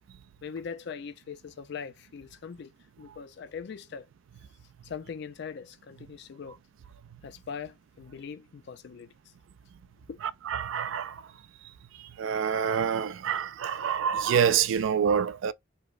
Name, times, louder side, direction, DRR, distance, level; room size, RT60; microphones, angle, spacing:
voice 1, 0.4-2.7 3.0-4.1 4.8-6.6 7.2-9.1 10.1-10.2, left 6 dB, 55° left, 0.4 m, -41 dB
voice 2, 10.5-11.2 12.2-15.5, right 7 dB, 70° right, 0.3 m, -26 dB
4.8 x 2.0 x 2.4 m
head